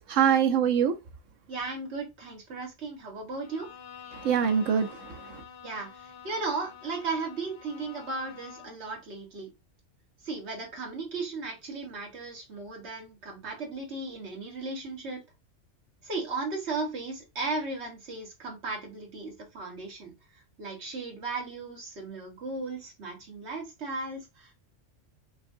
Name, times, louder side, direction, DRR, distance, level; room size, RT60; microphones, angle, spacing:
voice 1, 0.1-1.0 4.1-5.4, right 8 dB, 90° right, 1.1 m, -24 dB
voice 2, 1.5-3.7 5.6-9.5 10.2-15.2 16.0-20.1 20.6-24.5, right 3 dB, 65° right, 1.7 m, -36 dB
Bowed string instrument, 3.4-8.9, left 8 dB, 55° left, 1.0 m, -48 dB
5.4 x 2.4 x 2.6 m
omnidirectional pair, 1.3 m